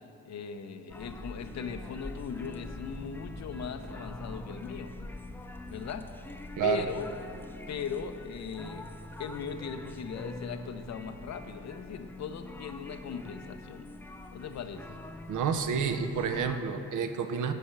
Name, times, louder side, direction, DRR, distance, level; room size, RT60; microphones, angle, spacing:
voice 1, 0.2-4.9 5.7-6.0 6.6-7.1 7.7-8.8 9.2-13.9 14.3-15.0, left 6 dB, 45° left, 9 dB, 0.6 m, -39 dB
sound 1, 0.9-16.6, left 2 dB, 5° left, 0.3 m, -44 dB
voice 2, 15.3-17.5, right 7 dB, 50° right, 8 dB, 0.7 m, -29 dB
8.0 x 5.4 x 4.5 m, 2.5 s
hypercardioid pair, 45°, 40 cm